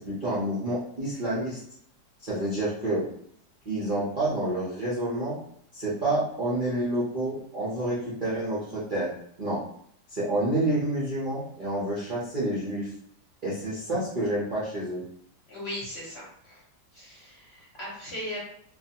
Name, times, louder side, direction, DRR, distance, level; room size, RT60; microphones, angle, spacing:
voice 1, 0.0-1.6 2.2-3.0 3.7-5.4 5.7-9.1 9.4-9.6 10.1-12.9 13.4-15.0, right 1 dB, 50° right, -9 dB, 0.6 m, -28 dB
voice 2, 15.5-16.6 16.9-18.4, left 1 dB, 50° left, -6 dB, 0.9 m, -38 dB
2.7 x 2.4 x 2.8 m, 0.67 s
omnidirectional pair, 1.9 m